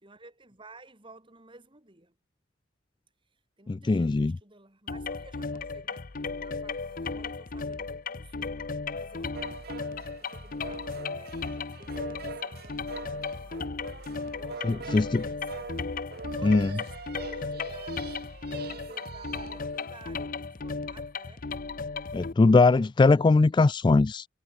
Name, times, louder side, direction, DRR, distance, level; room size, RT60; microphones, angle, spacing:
voice 1, 0.0-2.2 3.3-8.6 8.9-13.8 14.1-15.7 16.4-17.0 17.2-18.3 18.7-21.5, right 2 dB, 25° right, 3.9 m, -54 dB
voice 2, 3.7-4.4 14.6-15.2 16.4-16.7 22.1-24.3, left 3 dB, 25° left, 0.3 m, -21 dB
sound 1, 4.9-22.3, left 4 dB, 45° left, 0.8 m, -35 dB
sound 2, 9.3-20.0, right 4 dB, 55° right, 1.1 m, -43 dB
head